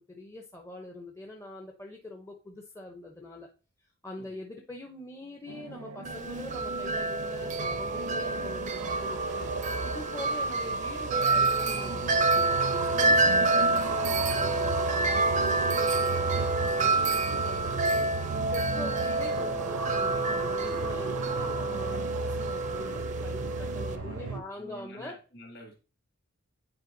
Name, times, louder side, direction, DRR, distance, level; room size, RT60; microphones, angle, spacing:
voice 1, 0.1-3.5 4.0-9.5 9.8-12.7 13.0-16.5 16.8-18.1 18.5-25.1, left 1 dB, 15° left, 1 dB, 0.6 m, -43 dB
sound 1, 5.5-24.4, right 4 dB, 90° right, 0.7 m, -35 dB
Wind chime, 6.1-24.0, right 2 dB, 35° right, 0.5 m, -28 dB
voice 2, 23.9-25.8, left 1 dB, 45° left, 0 dB, 2.2 m, -49 dB
9.5 x 4.6 x 2.6 m, 0.34 s
head